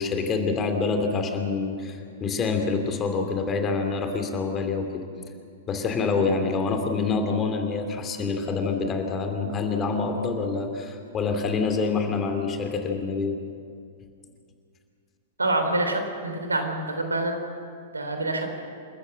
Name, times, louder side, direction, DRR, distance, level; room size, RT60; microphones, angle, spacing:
voice 1, 0.0-5.1 5.7-13.4, left 4 dB, 25° left, 5 dB, 2.7 m, -26 dB
voice 2, 15.4-17.4 17.9-18.6, right 2 dB, 80° right, 5 dB, 3.2 m, -26 dB
28.0 x 14.0 x 7.7 m, 2.3 s
figure-of-eight pair, 105°, 0 cm